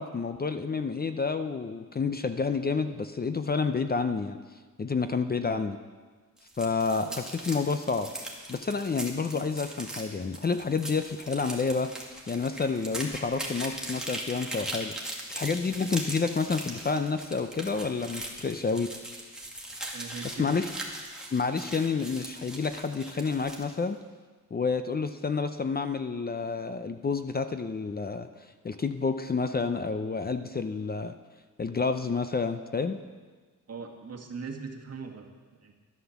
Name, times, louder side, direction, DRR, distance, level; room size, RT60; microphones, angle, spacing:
voice 1, 0.0-4.4 4.8-5.8 6.6-8.1 8.5-11.9 12.3-14.9 15.3-18.9 20.2-20.7 21.3-24.0 24.5-31.1 31.6-33.0, left 4 dB, 30° left, 9 dB, 0.6 m, -29 dB
sound 1, 6.4-23.7, right 1 dB, ahead, 2.3 m, -40 dB
voice 2, 19.9-20.5 33.7-35.7, right 5 dB, 50° right, 2 dB, 1.9 m, -40 dB
11.5 x 11.5 x 7.2 m, 1.4 s
cardioid pair, 110°, 33 cm